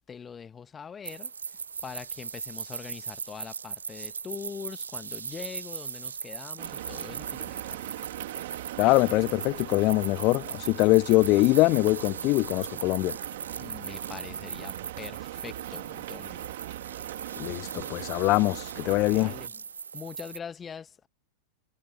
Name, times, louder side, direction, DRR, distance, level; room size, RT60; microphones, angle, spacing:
voice 1, 0.1-1.3 1.8-7.8 13.6-16.4 19.1-19.6 19.9-21.1, left 6 dB, 20° left, 1.8 m, -43 dB
sound 1, 1.0-20.4, right 6 dB, 70° right, 0.9 m, -39 dB
sound 2, 6.6-19.5, right 17 dB, 55° right, 2.6 m, -40 dB
voice 2, 8.8-13.2 17.4-19.3, left 22 dB, 40° left, 0.8 m, -23 dB
figure-of-eight pair, 90°, 0 cm